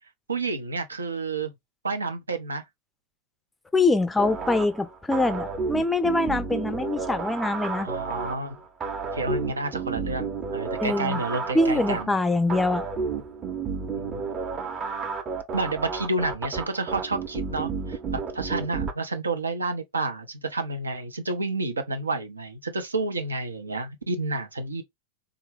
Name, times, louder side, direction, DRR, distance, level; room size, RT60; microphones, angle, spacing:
voice 1, 0.3-1.5 1.8-2.6 7.8-8.6 9.1-12.1 14.0-14.3 15.5-24.8, right 3 dB, 75° right, 0.6 m, -30 dB
voice 2, 3.7-7.9 10.8-11.2 11.5-12.9, left 2 dB, 10° left, 0.4 m, -24 dB
sound 1, 4.2-18.9, right 5 dB, 25° right, 0.7 m, -32 dB
3.4 x 2.2 x 3.3 m
figure-of-eight pair, 90°, 0 cm